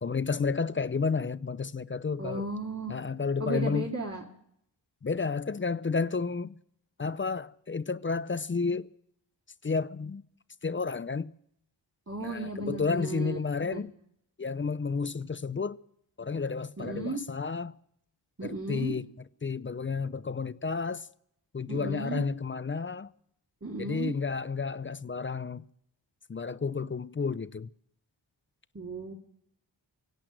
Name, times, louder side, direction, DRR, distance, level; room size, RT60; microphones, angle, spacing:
voice 1, 0.0-2.5 2.9-3.9 5.0-6.6 7.0-8.9 9.6-10.2 10.6-11.3 12.2-13.9 14.4-15.8 16.2-17.7 18.4-19.1 19.4-21.1 21.5-23.1 23.8-25.6 26.3-27.7, left 4 dB, 25° left, 0.5 m, -31 dB
voice 2, 2.2-3.0 3.4-4.2 12.1-13.4 13.7-13.8 16.8-17.2 18.4-18.9 21.7-22.2 23.6-24.1 28.7-29.1, right 2 dB, 35° right, 2.3 m, -34 dB
24.5 x 8.6 x 6.2 m
cardioid pair, 70°, 45 cm